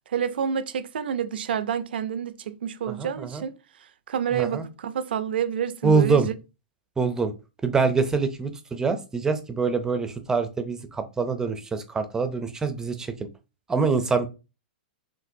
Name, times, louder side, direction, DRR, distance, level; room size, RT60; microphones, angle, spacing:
voice 1, 0.1-3.5 4.1-6.3, right 8 dB, 80° right, 0.5 m, -28 dB
voice 2, 2.9-3.4 4.3-4.7 5.8-6.3 7.0-7.3 7.6-13.1 13.7-14.3, right 4 dB, 10° right, 0.5 m, -25 dB
6.0 x 2.5 x 2.6 m
hypercardioid pair, 140°, 5 cm